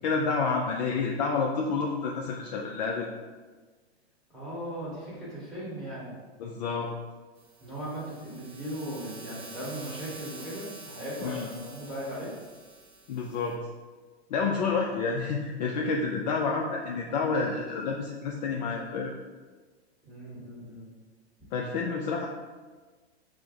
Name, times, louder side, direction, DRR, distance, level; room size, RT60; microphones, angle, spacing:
voice 1, 0.0-3.1 6.4-6.9 11.2-11.5 13.1-13.6 14.3-19.1 21.5-22.3, left 4 dB, 40° left, 0 dB, 0.4 m, -29 dB
voice 2, 4.3-6.2 7.6-12.3 20.0-20.9, equal, ahead, -8 dB, 1.4 m, -38 dB
sound 1, 7.4-13.5, right 3 dB, 30° right, 0.6 m, -47 dB
4.6 x 2.1 x 3.4 m, 1.4 s
hypercardioid pair, 115°, 33 cm